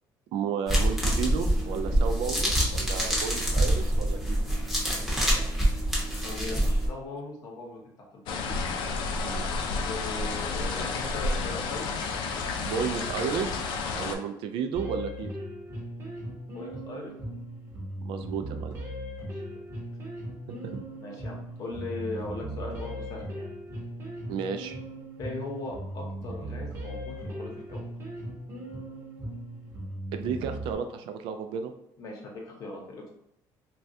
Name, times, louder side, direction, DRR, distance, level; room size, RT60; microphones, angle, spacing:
voice 1, 0.3-4.4 9.2-9.5 12.6-13.7 14.0-15.3 18.0-18.8 20.5-20.8 24.3-24.8 30.1-31.7, right 6 dB, 80° right, 7 dB, 0.4 m, -33 dB
sound 1, 0.7-6.9, right 1 dB, ahead, 0.7 m, -26 dB
voice 2, 6.2-8.6 9.8-11.9 16.5-17.1 19.2-19.4 21.0-23.5 25.2-27.8 32.0-33.1, left 2 dB, 45° left, -1 dB, 0.8 m, -39 dB
sound 2, 8.3-14.1, left 4 dB, 70° left, 0.4 m, -31 dB
sound 3, 14.7-30.7, right 1 dB, 30° right, 0.8 m, -38 dB
3.3 x 2.3 x 2.6 m, 0.76 s
cardioid pair, 170°, 8 cm